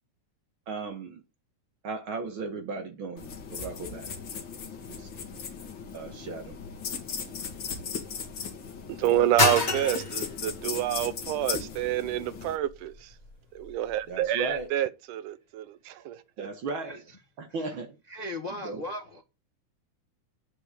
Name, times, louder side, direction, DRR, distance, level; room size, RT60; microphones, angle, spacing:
voice 1, 0.7-1.2 1.8-4.1 4.9-5.1 5.9-6.5 14.1-14.7 16.4-17.0 17.4-18.0 18.6-18.8, right 3 dB, 55° right, 1.7 m, -36 dB
sound 1, 3.2-12.6, left 6 dB, 45° left, 2.0 m, -38 dB
thumbtack strike on muted piano strings, 4.6-14.7, left 3 dB, 20° left, 1.2 m, -34 dB
voice 2, 9.0-13.1 13.6-16.5, right 13 dB, 85° right, 2.3 m, -28 dB
voice 3, 16.9-17.2 17.5-17.7 18.1-19.2, left 1 dB, 60° left, 0.4 m, -38 dB
9.7 x 5.3 x 8.1 m
omnidirectional pair, 3.5 m